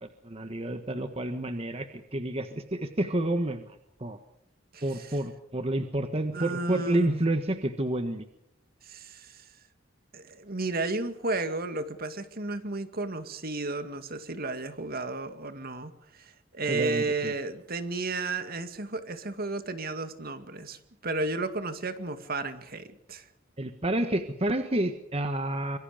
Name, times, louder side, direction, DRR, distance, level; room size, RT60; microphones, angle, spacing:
voice 1, 0.0-4.2 4.8-8.2 16.7-17.3 23.6-25.8, right 1 dB, 30° right, 7 dB, 1.6 m, -29 dB
voice 2, 4.7-5.2 6.3-7.2 8.8-9.5 10.1-23.3, right 3 dB, 50° right, 9 dB, 2.2 m, -33 dB
26.0 x 23.5 x 5.2 m, 0.72 s
head